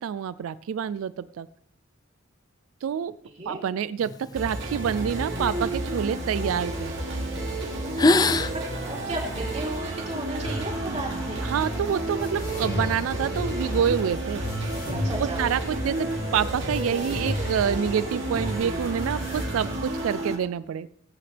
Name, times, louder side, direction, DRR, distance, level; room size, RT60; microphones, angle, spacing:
voice 1, 0.0-1.5 2.8-3.2 3.5-6.9 11.4-14.4 15.2-20.9, right 8 dB, 80° right, 17 dB, 0.3 m, -27 dB
sound 1, 4.0-6.7 7.3-7.5 7.8-9.8, left 3 dB, 20° left, 0.4 m, -27 dB
sound 2, 4.4-20.4, right 1 dB, 60° right, 2.6 m, -31 dB
voice 2, 8.8-11.5 15.0-15.4, right 1 dB, 35° right, -2 dB, 3.2 m, -34 dB
sound 3, 10.4-19.5, left 1 dB, 45° left, 1.8 m, -35 dB
19.0 x 8.6 x 3.4 m, 0.77 s
head